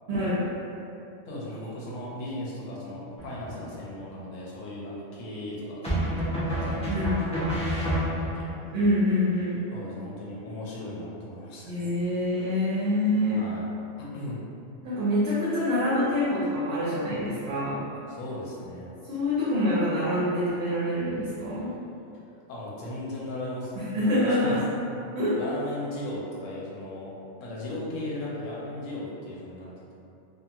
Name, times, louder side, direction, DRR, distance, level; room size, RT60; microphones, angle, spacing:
voice 1, 0.1-0.4 6.9-7.3 8.7-9.6 11.7-13.5 14.8-17.8 19.1-21.7 23.8-24.6 25.1-25.4, left 1 dB, 65° right, -10 dB, 0.9 m, -26 dB
voice 2, 1.3-8.5 9.7-11.9 13.4-13.7 14.0-14.4 18.1-18.9 22.5-24.7 25.3-27.1 27.4-29.7, left 1 dB, 85° left, -5 dB, 1.0 m, -37 dB
sound 1, 3.2-3.8 5.8-8.5, right 1 dB, 10° left, 0.4 m, -29 dB
2.9 x 2.4 x 2.4 m, 2.7 s
omnidirectional pair, 1.3 m